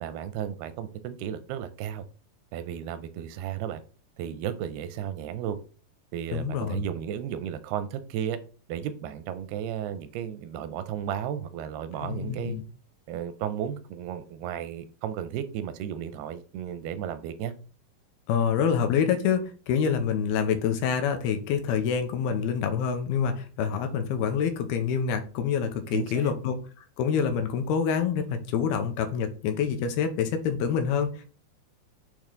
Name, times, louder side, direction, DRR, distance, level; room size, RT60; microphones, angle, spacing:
voice 1, 0.0-2.1 2.5-3.8 4.2-5.6 6.1-8.4 8.7-12.6 13.1-17.5 25.9-26.4, right 9 dB, 85° right, 12 dB, 2.6 m, -34 dB
voice 2, 6.3-6.9 12.0-12.6 18.3-26.6 27.0-31.3, left 7 dB, 85° left, 7 dB, 2.7 m, -26 dB
8.5 x 3.1 x 3.7 m, 0.38 s
omnidirectional pair, 4.4 m